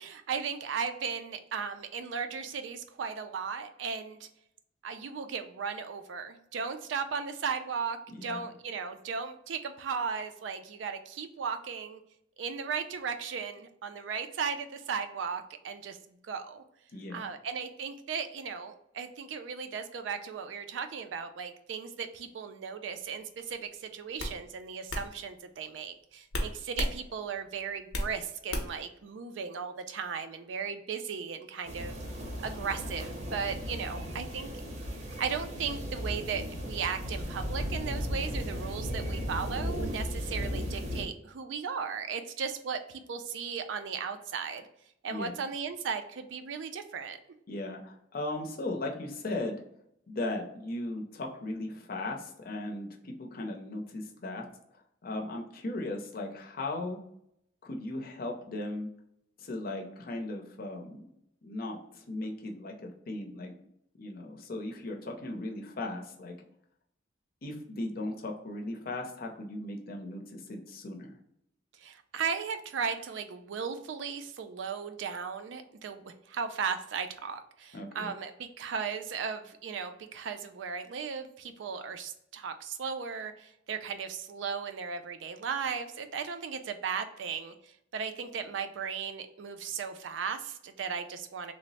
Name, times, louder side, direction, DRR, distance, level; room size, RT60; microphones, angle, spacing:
voice 1, 0.0-4.3 4.8-12.0 12.4-16.6 17.1-31.9 32.4-34.5 34.9-44.7 45.0-47.2 71.8-91.5, right 6 dB, 75° right, 8 dB, 0.4 m, -36 dB
voice 2, 8.1-8.4 16.9-17.2 40.2-40.5 45.1-45.3 47.5-49.6 50.1-54.5 55.0-57.0 57.6-58.9 59.4-61.0 61.4-63.5 64.0-66.3 67.4-71.2 77.7-78.1, left 2 dB, 50° left, 2 dB, 0.6 m, -37 dB
sound 1, 23.4-23.6 24.2-24.4 24.9-25.1 26.3-27.0 27.3-28.1 28.5-28.9, left 1 dB, 90° left, 0.7 m, -32 dB
sound 2, 31.6-41.0, equal, 35° right, 0.6 m, -36 dB
3.1 x 2.0 x 3.9 m, 0.74 s
head